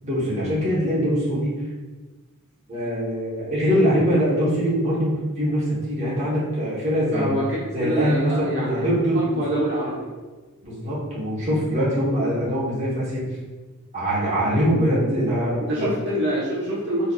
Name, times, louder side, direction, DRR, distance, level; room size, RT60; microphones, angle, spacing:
voice 1, 0.0-1.5 2.7-7.4 7.7-9.4 10.6-13.3 13.9-15.9, equal, 30° right, -9 dB, 1.1 m, -23 dB
voice 2, 7.1-7.4 7.8-8.9 9.1-10.0 15.7-17.1, right 1 dB, 55° right, -8 dB, 1.0 m, -25 dB
3.9 x 3.3 x 2.4 m, 1.3 s
head